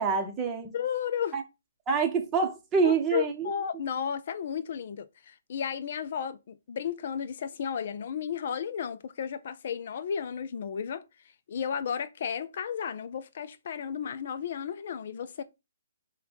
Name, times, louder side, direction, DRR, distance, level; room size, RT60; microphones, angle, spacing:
voice 1, 0.0-0.7 1.3-1.4 1.9-3.5, right 5 dB, 15° right, 0.8 m, -26 dB
voice 2, 0.7-1.4 2.8-11.0 11.5-15.4, left 8 dB, 50° left, 0.3 m, -33 dB
5.2 x 2.2 x 4.2 m
hypercardioid pair, 150°, 0 cm